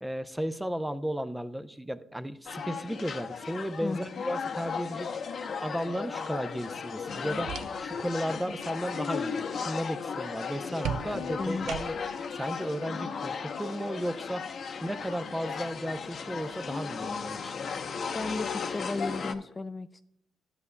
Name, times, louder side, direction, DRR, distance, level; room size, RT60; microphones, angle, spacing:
voice 1, 0.0-5.1 5.6-11.9 12.3-14.5 14.8-17.5, equal, 5° right, 11 dB, 0.6 m, -34 dB
sound 1, 2.5-19.3, left 5 dB, 60° left, 0.8 m, -36 dB
voice 2, 3.8-4.2 11.4-11.7 18.1-20.0, left 3 dB, 30° left, 11 dB, 0.3 m, -34 dB
sound 2, 7.1-8.1 8.4-8.8 10.8-12.2, right 9 dB, 80° right, 0.4 m, -38 dB
Wind instrument woodwind instrument, 7.9-15.9, left 7 dB, 85° left, 0.9 m, -51 dB
12.0 x 8.2 x 2.2 m, 0.80 s
supercardioid pair, 65°, 0 cm